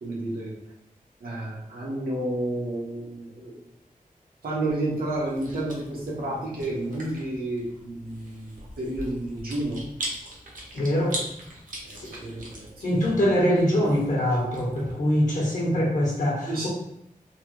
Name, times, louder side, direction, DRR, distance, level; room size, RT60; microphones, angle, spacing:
voice 1, 0.0-0.5 1.2-3.6 4.4-9.8 11.8-13.2 16.5-16.7, right 1 dB, 90° right, -5 dB, 1.1 m, -31 dB
Chewing mastication, 4.7-14.9, right 1 dB, 65° right, 0.9 m, -41 dB
voice 2, 10.7-11.2 12.0-12.1 12.8-16.7, equal, 60° left, -4 dB, 1.0 m, -23 dB
3.2 x 2.3 x 3.0 m, 0.81 s
wide cardioid pair, 125°, 15 cm